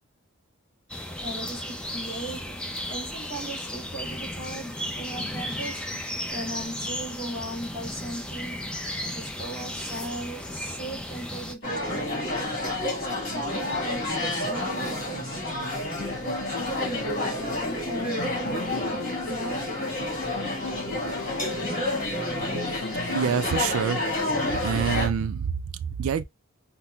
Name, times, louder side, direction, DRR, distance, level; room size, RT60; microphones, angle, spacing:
sound 1, 0.9-11.5, left 1 dB, 5° left, 0.4 m, -34 dB
voice 1, 1.1-2.6 2.9-5.9 6.3-8.7 9.0-12.2 13.0-15.5 16.4-19.8, right 1 dB, 20° left, 2.1 m, -37 dB
sound 2, 11.6-25.1, left 1 dB, 40° left, 1.6 m, -29 dB
sound 3, 16.0-24.7, left 5 dB, 80° left, 0.4 m, -38 dB
voice 2, 23.1-24.0 24.6-25.5 26.0-26.2, right 7 dB, 75° right, 0.4 m, -25 dB
5.6 x 2.0 x 2.2 m
head